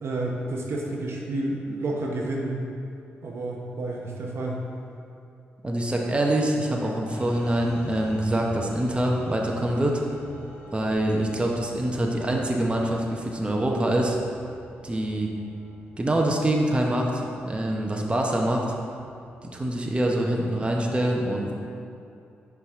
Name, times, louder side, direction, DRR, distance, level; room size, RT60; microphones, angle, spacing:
voice 1, 0.0-2.6 3.2-4.7, right 2 dB, 60° right, -1 dB, 0.8 m, -30 dB
voice 2, 5.6-10.0 10.7-14.2 14.8-15.3 16.0-18.6 19.5-21.5, right 1 dB, 20° right, 0 dB, 0.8 m, -25 dB
sound 1, 7.1-19.7, left 1 dB, 65° left, 1.1 m, -46 dB
5.5 x 4.7 x 3.6 m, 2.6 s
supercardioid pair, 50°, 5 cm